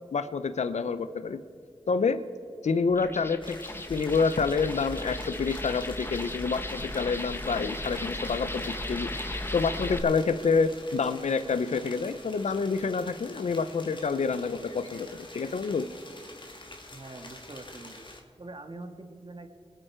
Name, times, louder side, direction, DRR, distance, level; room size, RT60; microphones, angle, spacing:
voice 1, 0.1-1.4 1.9-2.2 2.6-3.6 3.9-15.1 15.3-15.9, left 5 dB, 85° left, 12 dB, 0.6 m, -28 dB
sound 1, 2.9-10.0, left 1 dB, 20° left, 1.1 m, -36 dB
sound 2, 3.4-18.2, left 2 dB, 45° left, 2.0 m, -47 dB
voice 2, 16.9-18.1 18.4-19.5, right 2 dB, 45° right, 6 dB, 1.6 m, -44 dB
25.5 x 9.0 x 4.4 m, 2.5 s
wide cardioid pair, 50°, 11 cm